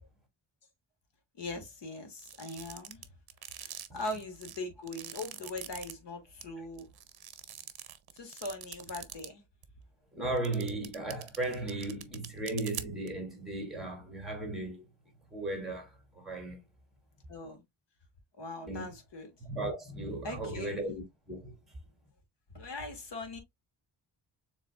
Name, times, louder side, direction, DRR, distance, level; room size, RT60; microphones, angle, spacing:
voice 1, 1.4-3.0 3.6-6.9 8.1-9.4 17.3-17.6 18.4-19.3 20.2-20.8 22.5-23.4, left 2 dB, 60° left, 1.8 m, -41 dB
sounds like leather, 2.2-5.9 6.4-6.5 6.8-9.3 9.6-9.7 10.4-13.1, right 10 dB, 50° right, 0.7 m, -43 dB
voice 2, 10.1-14.9 15.3-16.6 18.7-18.9 19.4-21.5, right 2 dB, ahead, 2.3 m, -36 dB
7.0 x 3.2 x 2.3 m
wide cardioid pair, 165°, 47 cm